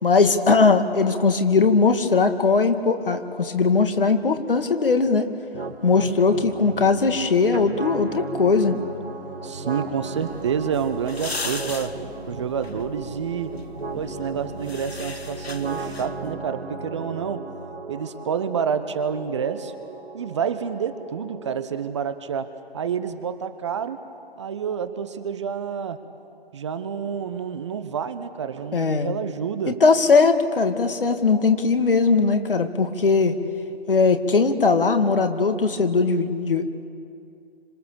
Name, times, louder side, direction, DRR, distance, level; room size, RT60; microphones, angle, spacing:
voice 1, 0.0-5.3 5.8-8.8 28.7-29.1 29.7-33.4 33.9-36.7, left 4 dB, 60° left, 7 dB, 2.2 m, -19 dB
sound 1, 5.5-21.5, right 2 dB, 75° right, 3.9 m, -36 dB
voice 2, 9.4-12.0 12.3-13.5 13.9-17.5 17.9-19.7 20.1-24.0 24.4-26.0 26.5-29.8, right 7 dB, 30° right, 10 dB, 0.9 m, -28 dB
sound 2, 10.2-16.3, left 3 dB, 75° left, 2.1 m, -37 dB
27.5 x 26.5 x 7.1 m, 2.5 s
figure-of-eight pair, 140°, 31 cm